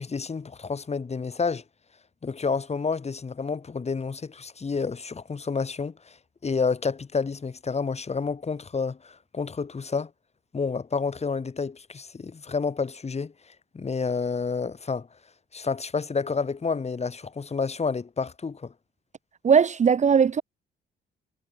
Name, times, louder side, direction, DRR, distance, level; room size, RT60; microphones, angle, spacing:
voice 1, 0.0-1.6 2.2-6.2 6.4-10.1 10.5-13.3 13.7-15.1 15.5-18.7, left 5 dB, 35° left, 4.1 m, -29 dB
voice 2, 19.4-20.4, right 6 dB, 35° right, 0.7 m, -19 dB
cardioid pair, 90°, 20 cm